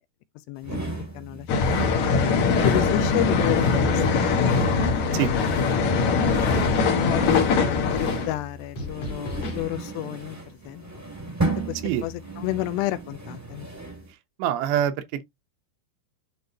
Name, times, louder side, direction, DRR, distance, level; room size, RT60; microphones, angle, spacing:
voice 1, 0.5-0.8 1.1-1.8 2.4-4.6 5.1-6.3 6.9-10.4 10.7-10.8 11.7-13.7, left 17 dB, 80° left, 2.7 m, -31 dB
Metal Drag Three, 0.6-14.1, right 2 dB, 10° right, 0.7 m, -35 dB
sound 1, 1.5-8.3, left 4 dB, 65° left, 1.9 m, -22 dB
Scratching (performance technique), 4.7-4.9 5.1-5.5 5.9-6.9 7.4-7.6 7.8-8.2 8.8-9.6, left 2 dB, 50° left, 2.3 m, -34 dB
voice 2, 14.4-15.2, right 10 dB, 85° right, 3.0 m, -25 dB
10.5 x 3.7 x 2.8 m
omnidirectional pair, 5.0 m